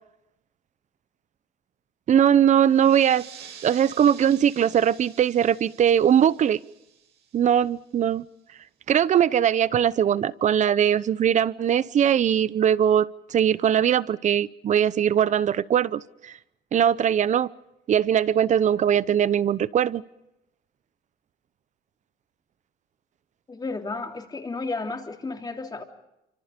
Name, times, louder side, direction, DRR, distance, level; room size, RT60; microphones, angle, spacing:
voice 1, 2.1-3.3 3.6-6.6 7.3-8.2 8.9-16.3 16.7-17.5 17.9-20.0, right 9 dB, 45° right, 18 dB, 0.8 m, -21 dB
sound 1, 2.7-7.9, right 8 dB, 85° right, 7.5 m, -48 dB
voice 2, 23.5-25.8, left 3 dB, 25° left, 3 dB, 3.4 m, -32 dB
28.5 x 25.5 x 5.3 m, 0.87 s
cardioid pair, 110°, 17 cm